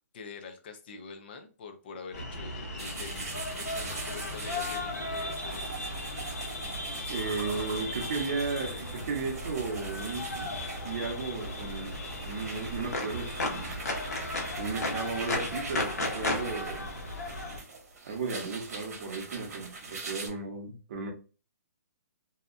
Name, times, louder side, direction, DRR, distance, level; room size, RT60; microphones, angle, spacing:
voice 1, 0.1-5.8, left 5 dB, 40° left, 5 dB, 0.5 m, -45 dB
sound 1, 2.1-17.6, left 2 dB, 80° left, 1.0 m, -35 dB
sound 2, 2.8-20.3, right 4 dB, 75° right, 1.0 m, -43 dB
voice 2, 7.1-10.6 10.8-12.0 12.2-13.8 14.6-16.9 18.0-21.1, right 4 dB, 45° right, 3 dB, 0.8 m, -35 dB
2.7 x 2.2 x 2.4 m, 0.35 s
hypercardioid pair, 165°, 9 cm